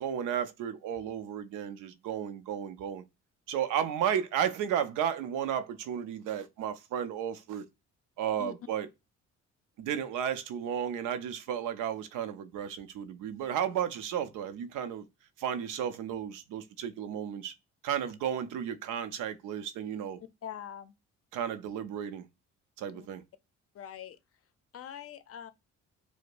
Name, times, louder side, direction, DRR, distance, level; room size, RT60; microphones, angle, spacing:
voice 1, 0.0-3.0 3.5-7.6 8.2-8.9 9.8-15.1 15.4-17.5 17.8-20.2 21.3-22.2 22.8-23.2, right 9 dB, 90° right, 0.6 m, -33 dB
voice 2, 20.4-20.9 22.9-23.1 23.7-24.2 24.7-25.5, left 9 dB, 50° left, 0.5 m, -43 dB
4.7 x 2.1 x 2.5 m
cardioid pair, 90°, 30 cm